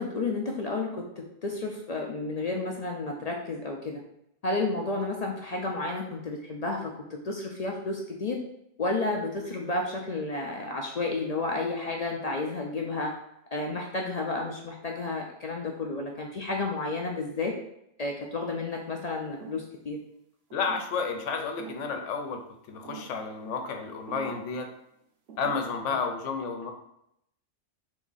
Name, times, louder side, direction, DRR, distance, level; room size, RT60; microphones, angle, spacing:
voice 1, 0.0-4.0 4.4-8.4 8.8-13.1 13.5-17.5 18.0-20.0, left 3 dB, 55° left, 0 dB, 0.4 m, -31 dB
sound 1, 19.4-19.7 20.5-21.1 21.6-21.9 22.8-23.2 24.1-24.5 25.3-25.6, right 6 dB, 60° right, 0.9 m, -44 dB
voice 2, 20.5-22.4 22.7-24.7 25.4-26.7, left 5 dB, 85° left, 4 dB, 1.0 m, -31 dB
3.5 x 3.1 x 3.9 m, 0.78 s
omnidirectional pair, 1.2 m